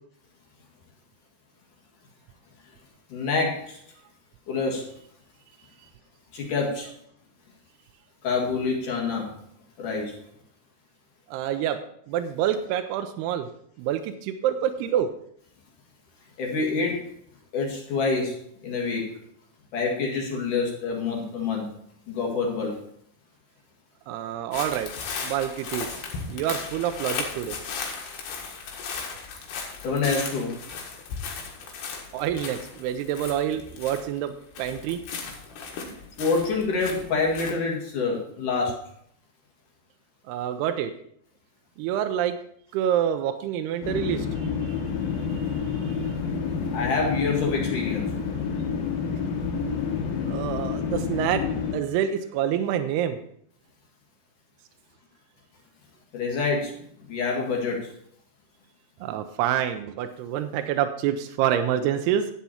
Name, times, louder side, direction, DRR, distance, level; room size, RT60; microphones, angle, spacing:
voice 1, 3.1-3.8 4.5-4.9 6.3-6.9 8.2-9.3 9.8-10.2 16.4-17.1 17.5-19.2 19.7-21.7 22.1-22.8 29.8-30.5 36.2-38.8 46.7-48.1 56.1-56.8 57.1-57.9, left 4 dB, 55° left, -1 dB, 3.0 m, -27 dB
voice 2, 11.3-11.8 12.1-13.5 13.8-15.1 24.1-24.9 25.2-25.9 26.3-27.6 32.1-34.3 34.6-35.0 40.3-40.9 41.8-42.4 42.7-44.3 44.6-44.7 45.3-46.0 50.3-51.4 51.7-53.2 59.0-62.2, right 10 dB, 80° right, 7 dB, 2.5 m, -27 dB
sound 1, 24.5-34.3 34.5-37.5, left 5 dB, 75° left, 3.7 m, -36 dB
sound 2, 43.8-51.7, left 6 dB, 90° left, 3.9 m, -29 dB
11.5 x 8.3 x 4.3 m, 0.68 s
omnidirectional pair, 5.0 m